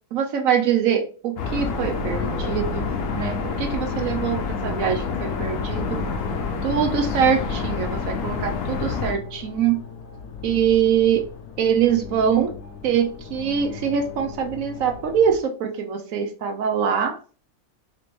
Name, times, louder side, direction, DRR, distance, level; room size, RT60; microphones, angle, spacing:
voice 1, 0.1-6.0 6.6-9.8 10.4-11.2 11.6-12.5 12.8-17.2, right 8 dB, 70° right, 5 dB, 1.0 m, -23 dB
sound 1, 1.4-9.2, left 4 dB, 65° left, 0.9 m, -27 dB
sound 2, 4.8-15.4, left 6 dB, 85° left, 1.1 m, -39 dB
4.1 x 2.8 x 3.0 m, 0.39 s
omnidirectional pair, 1.6 m